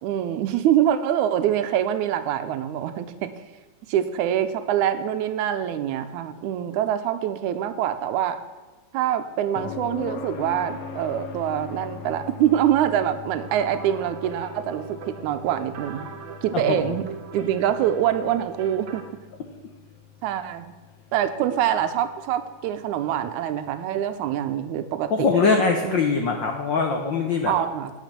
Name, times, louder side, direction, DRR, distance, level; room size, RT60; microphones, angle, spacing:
voice 1, 0.0-3.3 3.9-8.4 8.9-16.1 16.4-17.1 17.3-19.0 20.2-20.7 21.1-25.3 25.8-26.0 27.5-27.9, right 10 dB, 90° right, 10 dB, 2.1 m, -25 dB
sound 1, 9.6-23.4 25.6-25.7, left 7 dB, 70° left, 1.6 m, -41 dB
sound 2, 13.4-19.0, right 7 dB, 60° right, 1.3 m, -40 dB
voice 2, 25.1-27.5, left 4 dB, 85° left, 3 dB, 1.0 m, -22 dB
9.2 x 5.8 x 7.3 m, 1.3 s
omnidirectional pair, 3.3 m